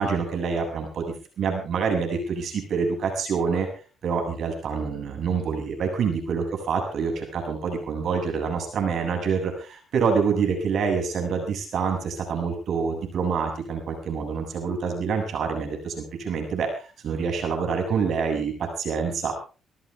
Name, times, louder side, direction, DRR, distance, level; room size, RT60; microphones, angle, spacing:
voice 1, 0.0-3.7 4.0-19.3, right 5 dB, 65° right, 3 dB, 7.4 m, -26 dB
25.0 x 13.5 x 3.5 m, 0.36 s
cardioid pair, 90°, 0 cm